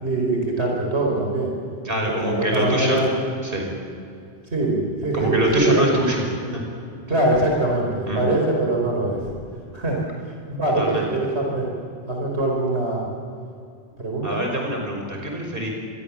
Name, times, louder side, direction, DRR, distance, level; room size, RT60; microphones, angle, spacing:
voice 1, 0.0-1.5 2.0-3.1 4.5-5.9 7.1-9.3 9.7-10.0 10.5-11.7 12.1-13.1 14.0-14.4, right 2 dB, 80° right, -1 dB, 5.0 m, -23 dB
voice 2, 1.8-3.0 3.4-3.7 5.1-6.3 6.5-6.6 8.1-8.3 10.8-11.2 14.2-15.7, equal, 55° right, 1 dB, 5.9 m, -24 dB
27.0 x 22.0 x 7.4 m, 2.5 s
omnidirectional pair, 1.1 m